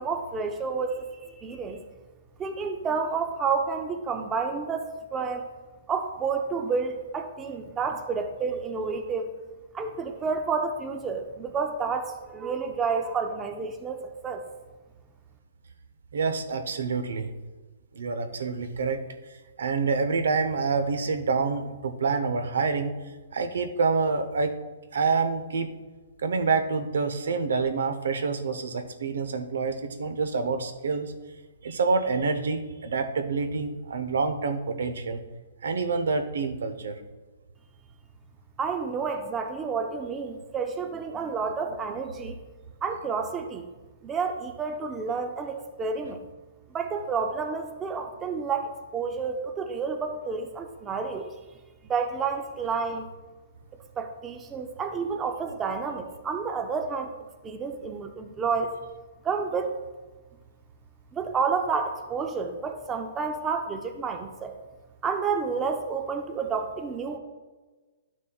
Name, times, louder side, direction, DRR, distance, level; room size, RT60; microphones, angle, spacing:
voice 1, 0.0-1.8 2.4-4.8 5.1-5.5 5.9-9.3 9.7-14.4 38.6-42.4 42.8-43.6 44.0-46.2 46.7-51.3 51.9-53.1 54.0-57.1 57.4-58.7 59.2-59.7 61.1-64.6 65.0-67.2, right 5 dB, 10° right, 5 dB, 0.4 m, -30 dB
voice 2, 16.1-17.3 17.9-19.0 19.6-23.0 23.3-24.6 24.9-25.7 26.2-31.1 31.6-35.2 35.6-37.0, right 4 dB, 80° right, 8 dB, 0.8 m, -27 dB
11.5 x 6.1 x 2.3 m, 1.3 s
hypercardioid pair, 170°, 0 cm